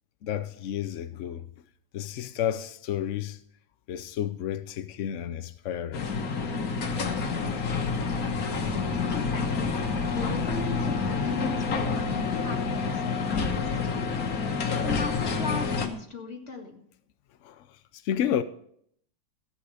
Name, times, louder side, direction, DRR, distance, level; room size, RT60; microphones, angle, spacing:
voice 1, 0.2-1.5 1.9-3.4 3.9-6.1 13.9-14.0 17.4-18.4, left 10 dB, 80° left, 0.6 m, -31 dB
sound 1, 5.9-15.9, left 4 dB, 55° left, 1.7 m, -28 dB
voice 2, 9.1-14.0 14.7-16.8, left 4 dB, 35° left, 2.0 m, -37 dB
14.0 x 8.8 x 4.9 m
omnidirectional pair, 2.0 m